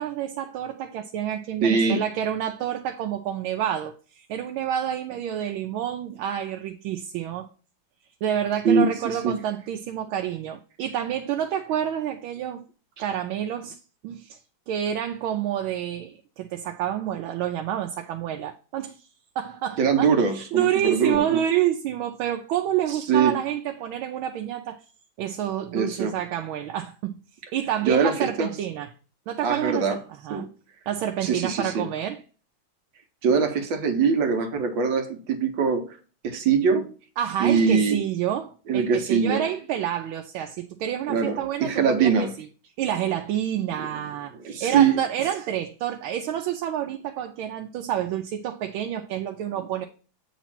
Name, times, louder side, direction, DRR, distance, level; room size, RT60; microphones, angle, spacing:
voice 1, 0.0-7.5 8.2-12.6 13.0-14.4 14.7-19.0 19.4-24.8 25.2-27.2 27.5-28.9 29.3-30.5 30.9-32.2 37.2-42.3 42.8-49.9, right 10 dB, 90° right, 1.4 m, -28 dB
voice 2, 1.6-2.0 8.6-9.4 19.8-21.4 23.1-23.4 25.7-26.2 27.8-28.5 29.4-30.0 30.3-30.5 31.2-31.9 33.2-36.0 36.2-36.9 37.4-38.0 38.7-39.5 41.1-42.3 43.7-43.9 44.3-45.0, right 5 dB, 70° right, 1.6 m, -22 dB
8.1 x 3.1 x 5.8 m
omnidirectional pair, 2.2 m